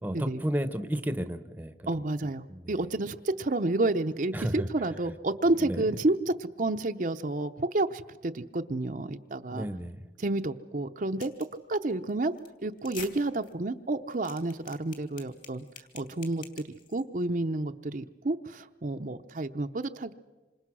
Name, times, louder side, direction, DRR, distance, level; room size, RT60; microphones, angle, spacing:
voice 1, 0.0-1.7 2.5-2.6 4.3-4.7 5.6-5.8 9.5-10.1, equal, 10° right, 11 dB, 0.9 m, -32 dB
voice 2, 1.9-9.7 10.2-11.3 11.7-12.3 12.6-15.6 15.9-16.6 16.9-20.1, right 2 dB, 50° right, 7 dB, 0.7 m, -30 dB
sound 1, 11.2-11.6 11.9-12.1 12.4-12.5 12.8-13.1 13.4-13.5 13.9-17.0, left 7 dB, 50° left, 3.1 m, -45 dB
27.0 x 26.0 x 6.2 m, 1.2 s
head